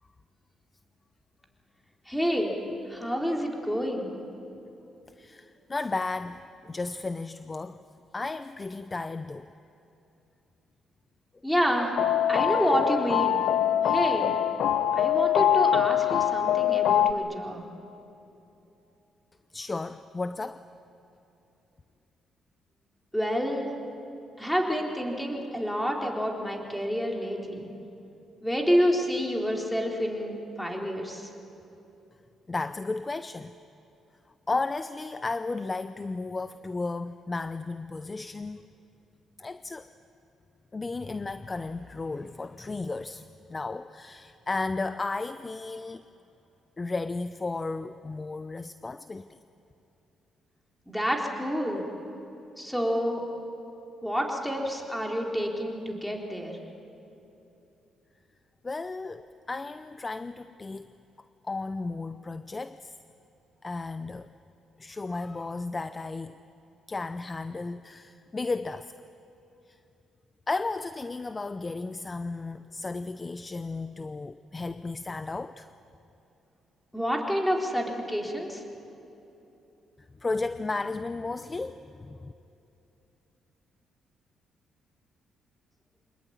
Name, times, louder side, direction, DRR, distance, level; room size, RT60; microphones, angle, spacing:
voice 1, 2.1-2.5 2.9-4.1 11.4-11.9 12.3-13.4 13.9-14.3 14.9-17.6 23.1-23.7 24.4-27.7 28.4-31.3 50.9-51.8 52.6-53.2 54.0-56.6 76.9-78.6, equal, 5° left, 0 dB, 3.8 m, -28 dB
voice 2, 5.2-7.8 8.1-9.5 19.5-20.7 32.5-33.5 34.5-38.7 39.4-39.9 40.7-46.0 46.8-49.4 58.6-60.9 61.4-62.9 63.6-64.3 64.8-66.4 66.9-68.9 69.7-69.8 70.5-75.7 80.2-82.3, left 3 dB, 25° left, 12 dB, 0.6 m, -34 dB
sound 1, 12.0-17.1, left 10 dB, 80° left, 0.7 m, -24 dB
25.5 x 20.5 x 9.5 m, 2.9 s
cardioid pair, 90°, 0 cm